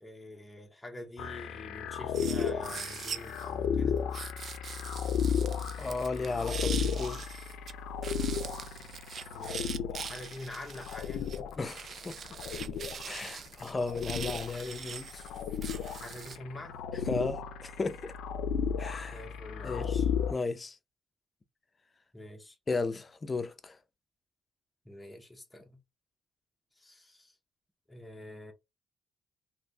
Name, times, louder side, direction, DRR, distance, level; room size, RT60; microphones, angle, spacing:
voice 1, 0.0-4.0 9.3-11.6 16.0-16.8 19.1-20.1 22.1-22.6 24.8-25.8 26.8-27.3 27.9-28.5, left 1 dB, 10° left, 0.8 m, -46 dB
sound 1, 1.2-20.3, left 7 dB, 85° left, 0.5 m, -34 dB
sound 2, 2.1-3.5 4.1-7.7 8.0-16.4, right 6 dB, 55° right, 0.4 m, -43 dB
voice 2, 5.8-7.2 11.6-12.2 13.0-15.2 16.9-18.1 18.8-19.2 19.6-19.9 20.3-20.8 22.7-23.8, left 3 dB, 30° left, 0.5 m, -35 dB
3.1 x 2.7 x 2.7 m
cardioid pair, 90°, 0 cm